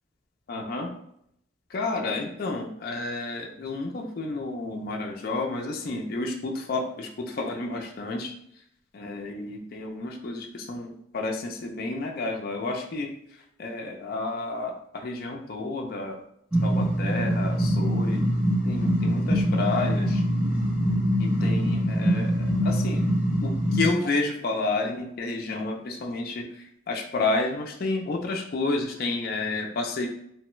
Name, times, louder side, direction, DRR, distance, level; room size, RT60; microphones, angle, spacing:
voice 1, 0.5-0.9 1.7-8.3 8.9-13.1 13.6-16.2 16.6-18.2 18.6-20.2 21.2-23.0 23.4-26.5 26.9-30.1, left 3 dB, 50° left, 2 dB, 0.3 m, -30 dB
sound 1, 16.5-23.9, equal, 5° right, 0.6 m, -24 dB
3.0 x 2.2 x 3.0 m, 0.72 s
head